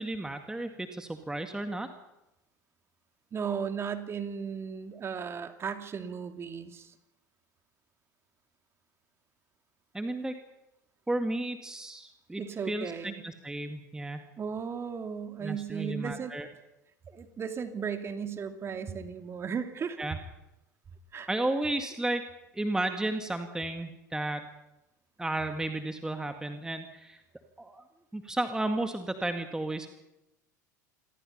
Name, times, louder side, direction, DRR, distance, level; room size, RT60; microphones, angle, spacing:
voice 1, 0.0-1.9 9.9-10.4 11.1-12.4 12.7-14.3 15.4-16.5 20.0-20.2 21.3-22.2 22.5-24.5 25.2-27.2 27.6-27.8 28.1-29.9, right 2 dB, 5° right, 6 dB, 2.0 m, -33 dB
voice 2, 3.3-6.9 12.4-13.2 14.4-16.4 17.1-20.1 21.1-21.3, right 6 dB, 25° right, 7 dB, 2.6 m, -36 dB
28.5 x 22.0 x 5.7 m, 0.94 s
figure-of-eight pair, 75°, 10 cm